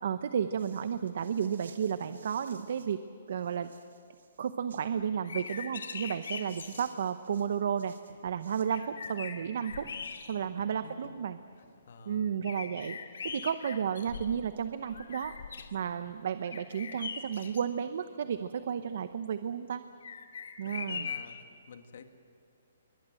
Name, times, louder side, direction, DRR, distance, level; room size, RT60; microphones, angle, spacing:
voice 1, 0.0-3.0 3.3-3.7 4.4-7.9 8.2-9.9 10.3-11.4 12.1-13.0 13.2-15.3 15.7-19.8 20.6-21.1, right 8 dB, 50° right, 11 dB, 0.8 m, -32 dB
sound 1, 0.6-3.0 3.3-4.9 5.4-8.8, right 5 dB, 80° right, 2.3 m, -57 dB
sound 2, 5.1-6.9 8.3-8.4 8.7-10.6 11.2-11.3 12.4-14.5 14.9-15.7 16.5-17.6 20.0-21.4, left 6 dB, 70° left, 2.6 m, -41 dB
sound 3, 8.1-8.3 8.7-8.9 9.3-9.5 9.8-10.1 10.4-10.7 11.0-11.9 12.2-13.0 13.3-13.5 13.9-14.1 14.4-14.6 15.0-15.2 15.5-15.7 16.0-16.3 16.7-16.9 17.2-17.5 17.8-18.0 18.4-18.6 18.9-19.1, right 2 dB, 10° right, 7.9 m, -62 dB
voice 2, 10.6-11.0 11.6-12.3 20.6-21.4 21.7-22.0, left 6 dB, 55° left, 7 dB, 2.0 m, -51 dB
27.0 x 23.0 x 7.7 m, 2.4 s
hypercardioid pair, 170°, 0 cm